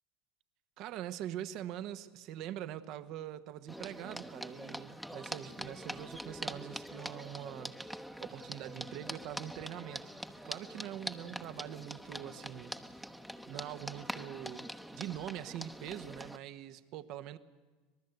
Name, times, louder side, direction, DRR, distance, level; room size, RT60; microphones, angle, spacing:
voice 1, 0.8-10.1 10.4-12.8 13.5-17.4, right 11 dB, 60° right, 12 dB, 1.2 m, -43 dB
sound 1, 3.7-16.4, equal, ahead, 1.0 m, -44 dB
25.5 x 18.5 x 8.1 m, 1.3 s
hypercardioid pair, 95°, 0 cm